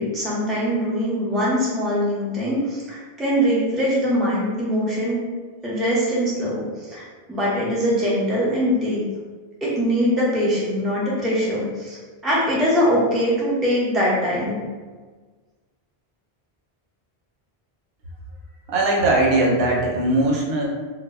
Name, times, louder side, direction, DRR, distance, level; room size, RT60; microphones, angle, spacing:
voice 1, 0.0-5.2 5.6-7.0 7.3-9.0 9.6-14.6, equal, ahead, -7 dB, 0.4 m, -22 dB
voice 2, 18.7-20.7, right 2 dB, 75° right, -2 dB, 0.8 m, -19 dB
2.1 x 2.0 x 3.4 m, 1.4 s
omnidirectional pair, 1.0 m